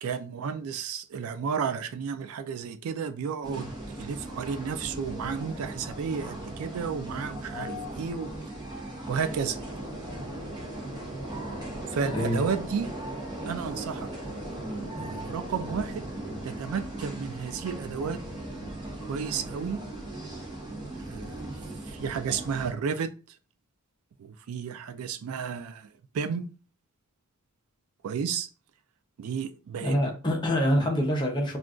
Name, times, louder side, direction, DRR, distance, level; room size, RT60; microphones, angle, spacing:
voice 1, 0.0-3.7 4.0-8.3 9.1-9.6 11.9-12.9 13.5-14.1 15.0-16.0 16.4-18.2 19.1-19.8 21.1-21.5 21.9-23.1 24.2-25.9 26.1-26.5 28.0-28.5 29.2-30.0, right 6 dB, 75° right, 0.3 m, -32 dB
sound 1, 3.4-22.7, right 1 dB, 20° right, 0.7 m, -38 dB
sound 2, 9.3-16.5, equal, 45° right, 1.1 m, -43 dB
voice 2, 12.1-12.4 29.8-31.6, equal, 20° left, 0.6 m, -25 dB
2.4 x 2.3 x 3.6 m
head